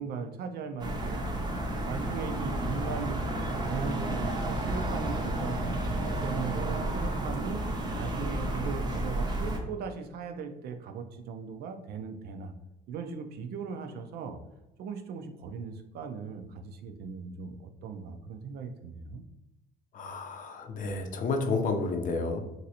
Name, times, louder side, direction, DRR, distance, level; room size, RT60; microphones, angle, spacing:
voice 1, 0.0-3.2 3.7-5.7 6.2-7.6 7.9-12.5 12.9-14.4 14.8-19.2, right 5 dB, 70° right, 6 dB, 0.5 m, -38 dB
sound 1, 0.8-9.6, right 1 dB, 25° right, 0.6 m, -31 dB
voice 2, 19.9-22.4, left 3 dB, 50° left, 5 dB, 0.6 m, -31 dB
3.1 x 2.6 x 2.8 m, 0.94 s
cardioid pair, 110°, 17 cm